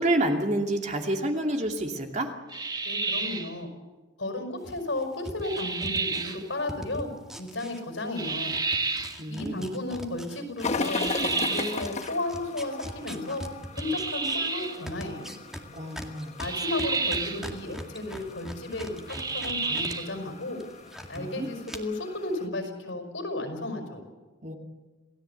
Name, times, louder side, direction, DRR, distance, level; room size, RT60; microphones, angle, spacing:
voice 1, 0.0-2.3 9.2-9.7 15.7-16.3 21.1-21.5 24.4-24.5, right 1 dB, 35° right, 3 dB, 2.6 m, -28 dB
sound 1, 2.5-3.5 5.4-6.4 8.2-9.2 10.8-11.9 13.8-14.8 16.4-17.4 19.1-20.1, right 4 dB, 20° right, 1.5 m, -30 dB
voice 2, 2.9-3.7 4.2-7.1 7.4-8.5 9.3-13.4 13.8-15.3 16.4-20.6 21.1-24.0, left 2 dB, 70° left, 5 dB, 5.4 m, -33 dB
sound 2, 4.6-8.2 8.5-20.0 20.3-21.2 21.6-21.8, equal, 5° right, 2.1 m, -41 dB
sound 3, 10.6-22.5, left 3 dB, 35° left, 1.2 m, -38 dB
28.0 x 17.0 x 8.3 m, 1.2 s
head